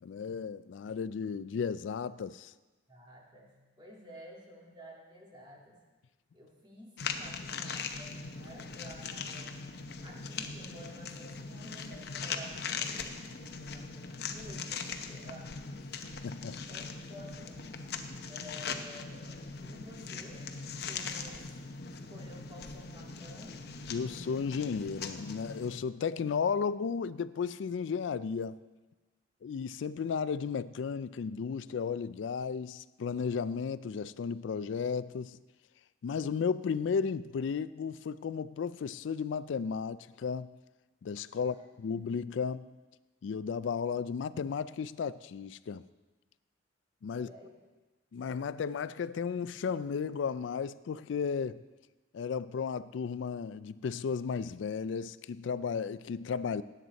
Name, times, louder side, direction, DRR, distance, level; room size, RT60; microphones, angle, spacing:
voice 1, 0.0-2.5 16.2-16.6 23.9-28.6 29.4-35.4 36.0-40.5 41.0-42.7 43.2-45.9 47.0-47.3 48.1-51.6 52.1-56.6, left 6 dB, 85° left, 0.4 m, -34 dB
voice 2, 2.9-5.8 6.3-9.7 10.0-15.5 16.7-17.7 18.3-21.6 21.9-23.6 41.3-41.8 47.1-47.6, equal, 25° right, 2.0 m, -52 dB
sound 1, 7.0-25.8, left 5 dB, 55° left, 0.7 m, -40 dB
17.0 x 7.9 x 4.0 m
head